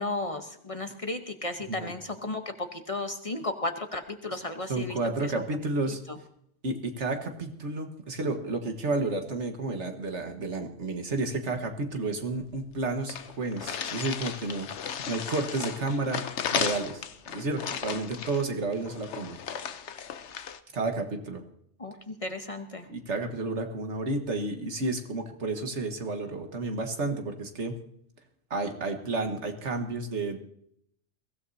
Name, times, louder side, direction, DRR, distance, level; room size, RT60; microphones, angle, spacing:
voice 1, 0.0-5.3 6.1-6.2 21.8-22.9, left 2 dB, 30° left, 6 dB, 1.0 m, -34 dB
voice 2, 4.7-6.0 6.6-14.7 15.1-16.2 16.5-17.0 17.3-19.4 20.7-21.4 22.9-27.8 28.5-30.4, right 3 dB, 75° right, 5 dB, 1.8 m, -31 dB
sound 1, 12.4-12.5 12.7-12.8 13.1-20.6, left 7 dB, 75° left, 1.1 m, -35 dB
22.5 x 15.5 x 2.8 m, 0.71 s
omnidirectional pair, 1.2 m